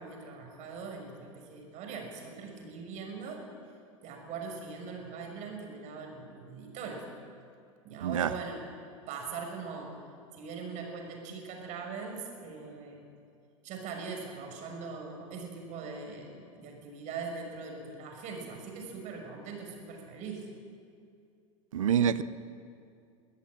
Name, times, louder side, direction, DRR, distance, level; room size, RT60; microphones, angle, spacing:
voice 1, 0.0-3.5 4.0-7.1 7.8-8.7 9.1-10.0 10.3-13.0 13.6-20.4, right 5 dB, 45° right, 2 dB, 6.4 m, -41 dB
voice 2, 8.0-8.3 21.7-22.2, right 8 dB, 75° right, 15 dB, 0.9 m, -26 dB
24.0 x 14.0 x 8.8 m, 2.4 s
figure-of-eight pair, 90°, 17 cm